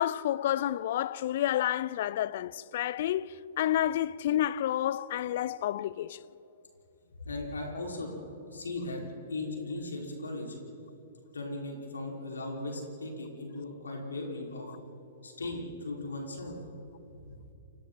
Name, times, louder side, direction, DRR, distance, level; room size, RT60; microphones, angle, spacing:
voice 1, 0.0-6.2, left 12 dB, 55° left, 0.6 m, -30 dB
voice 2, 7.2-8.1 8.5-9.0 9.3-10.6 11.3-14.7 15.2-16.7 17.1-17.4, left 2 dB, 85° left, 5.7 m, -37 dB
29.0 x 25.0 x 4.4 m
hypercardioid pair, 115°, 0 cm